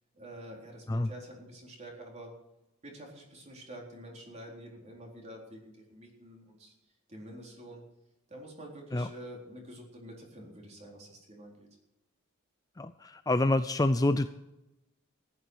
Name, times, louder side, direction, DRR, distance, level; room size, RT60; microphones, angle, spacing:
voice 1, 0.1-2.4 2.8-6.7 7.1-7.8 8.3-11.7, right 1 dB, 30° right, 0 dB, 4.0 m, -47 dB
voice 2, 12.8-14.3, left 2 dB, 15° left, 10 dB, 0.5 m, -27 dB
15.5 x 11.0 x 6.4 m, 0.95 s
head